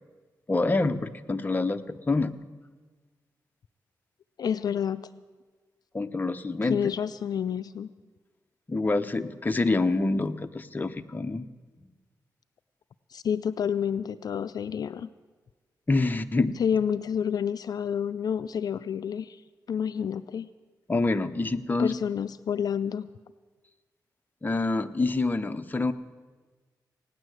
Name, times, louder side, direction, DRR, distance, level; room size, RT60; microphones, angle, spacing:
voice 1, 0.5-2.4 5.9-6.8 8.7-11.5 15.9-16.6 20.9-21.9 24.4-25.9, left 3 dB, 25° left, 9 dB, 0.7 m, -26 dB
voice 2, 4.4-5.0 6.6-7.9 13.1-15.1 16.6-19.4 19.7-20.5 21.8-23.1, left 8 dB, 65° left, 13 dB, 0.4 m, -29 dB
16.5 x 9.8 x 7.9 m, 1.4 s
cardioid pair, 80°, 7 cm